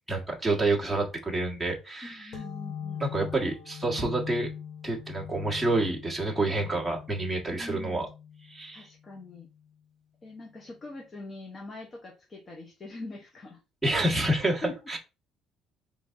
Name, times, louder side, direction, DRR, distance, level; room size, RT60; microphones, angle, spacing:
voice 1, 0.1-2.4 3.0-4.5 4.8-8.1 8.5-8.9 13.8-15.0, right 2 dB, ahead, -3 dB, 1.4 m, -28 dB
voice 2, 2.0-3.1 7.5-8.1 8.7-9.5 10.2-13.6 14.6-14.7, left 2 dB, 30° left, 1 dB, 1.0 m, -42 dB
sound 1, 2.3-9.6, left 8 dB, 70° left, 1.3 m, -42 dB
3.9 x 3.5 x 3.7 m, 0.29 s
cardioid pair, 120°, 0 cm